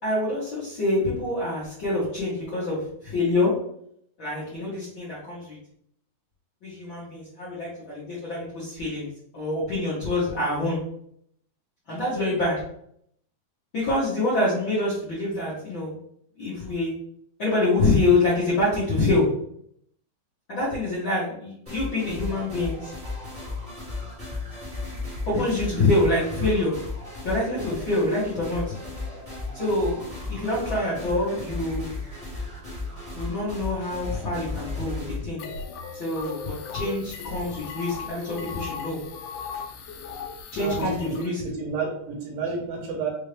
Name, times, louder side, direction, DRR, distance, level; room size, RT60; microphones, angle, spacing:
voice 1, 0.0-3.5 4.2-5.6 6.6-10.8 11.9-12.6 13.7-15.9 16.4-16.9 17.4-19.3 20.5-22.9 25.2-26.7 27.2-28.7 29.5-31.9 33.1-35.4 35.9-39.0 40.5-41.4, left 2 dB, 60° left, -10 dB, 1.3 m, -26 dB
sound 1, 21.6-35.2, left 3 dB, 30° right, 0.9 m, -35 dB
sound 2, 35.4-41.3, left 6 dB, 85° left, 1.8 m, -37 dB
voice 2, 40.6-43.1, right 4 dB, 75° right, 0 dB, 2.5 m, -31 dB
5.6 x 2.7 x 3.3 m, 0.69 s
omnidirectional pair, 4.3 m